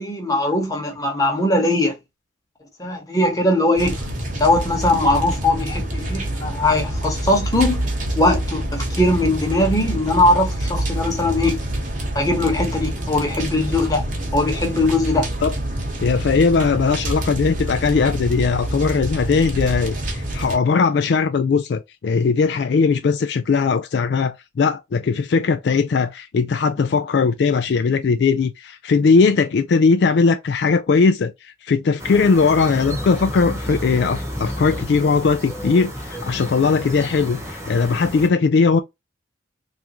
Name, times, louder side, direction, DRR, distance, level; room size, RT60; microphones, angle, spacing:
voice 1, 0.0-1.9 2.8-4.0 4.4-7.9 8.1-11.6 12.1-14.1 14.3-15.3, left 2 dB, 20° left, 1.0 m, -20 dB
sound 1, 3.8-20.6, right 1 dB, 40° right, 1.0 m, -26 dB
voice 2, 16.0-38.8, left 4 dB, 60° left, 0.3 m, -19 dB
sound 2, 32.0-38.3, equal, 15° right, 0.9 m, -31 dB
3.4 x 2.6 x 2.9 m
head